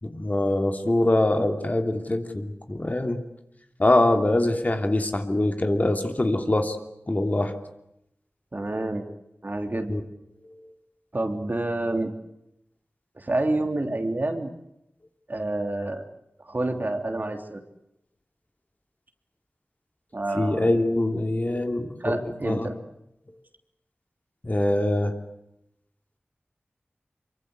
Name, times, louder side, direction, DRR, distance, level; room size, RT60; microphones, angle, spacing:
voice 1, 0.0-3.2 3.8-6.8 7.1-7.5 9.9-10.0 20.3-22.7 24.4-25.2, left 1 dB, 40° left, 5 dB, 3.0 m, -23 dB
voice 2, 8.5-9.0 9.4-10.1 11.1-12.1 13.2-14.5 15.3-16.0 16.4-17.6 20.1-20.7 22.0-22.8, right 2 dB, 50° right, 5 dB, 3.3 m, -28 dB
24.5 x 23.5 x 8.1 m, 0.83 s
wide cardioid pair, 45°, 4 cm